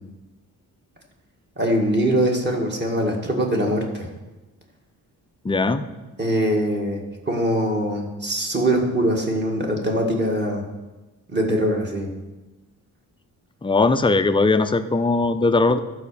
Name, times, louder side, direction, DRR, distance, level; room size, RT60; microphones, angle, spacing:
voice 1, 1.6-4.1 6.2-7.0 7.3-10.6 11.3-12.1, right 1 dB, 30° right, 0 dB, 1.9 m, -22 dB
voice 2, 5.4-5.8 13.6-15.8, left 3 dB, 15° left, 9 dB, 0.5 m, -19 dB
12.0 x 5.0 x 6.9 m, 1.1 s
wide cardioid pair, 140°, 36 cm